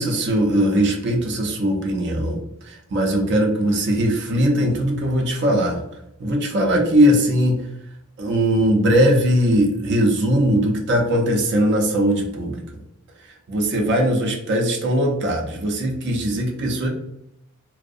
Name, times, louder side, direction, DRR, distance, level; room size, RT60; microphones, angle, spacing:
voice 1, 0.0-2.4 2.6-5.8 6.2-7.6 8.2-12.6 13.5-16.9, equal, 55° right, 1 dB, 0.4 m, -20 dB
2.4 x 2.0 x 2.5 m, 0.81 s
head